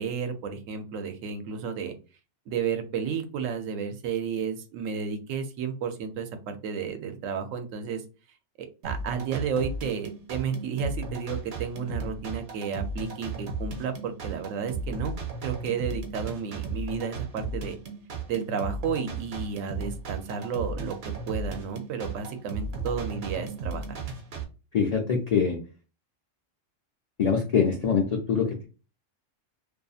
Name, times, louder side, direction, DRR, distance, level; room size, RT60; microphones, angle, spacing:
voice 1, 0.0-2.0 2.5-8.0 8.6-15.1 15.4-17.8 18.3-24.0, right 6 dB, 85° right, 7 dB, 1.0 m, -32 dB
sound 1, 8.8-24.4, right 4 dB, 60° right, 0.9 m, -35 dB
voice 2, 24.7-25.6 27.2-28.6, left 6 dB, 75° left, 1 dB, 0.3 m, -24 dB
2.7 x 2.4 x 2.3 m, 0.32 s
omnidirectional pair, 1.3 m